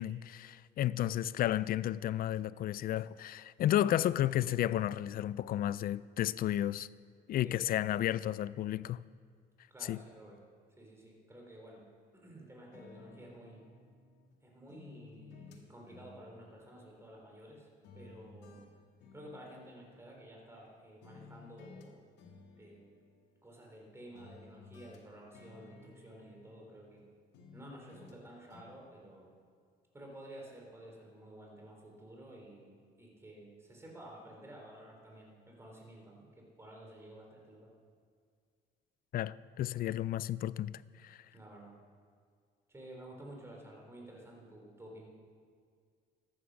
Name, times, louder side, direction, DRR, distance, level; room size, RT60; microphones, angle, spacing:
voice 1, 0.0-6.9 7.3-9.0 9.9-10.0 39.1-41.2, left 12 dB, 55° left, 0.4 m, -32 dB
voice 2, 9.7-10.4 10.8-11.8 12.1-13.6 14.4-17.7 17.9-18.6 19.1-22.0 22.6-22.9 23.4-27.0 27.5-29.4 29.9-37.7 41.3-41.7 42.7-45.1, right 1 dB, 15° right, 3.8 m, -52 dB
sound 1, 12.7-14.3 14.7-17.5 17.8-20.7 21.0-21.9 22.2-23.8 24.1-27.0 27.3-28.2 28.5-28.6, left 4 dB, 75° left, 2.1 m, -57 dB
14.0 x 10.0 x 6.3 m
cardioid pair, 95°, 18 cm